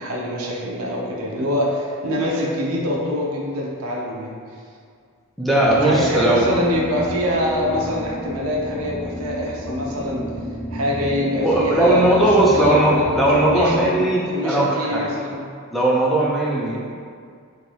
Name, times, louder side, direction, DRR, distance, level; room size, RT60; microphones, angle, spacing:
voice 1, 0.0-4.4 5.8-10.3 10.7-14.0 14.3-15.4, equal, 70° right, -3 dB, 0.6 m, -24 dB
voice 2, 5.4-6.5 11.4-15.1 15.7-16.8, right 1 dB, ahead, -5 dB, 0.4 m, -18 dB
sound 1, 5.6-13.8, equal, 30° left, 0.9 m, -32 dB
2.7 x 2.6 x 3.2 m, 2.2 s
head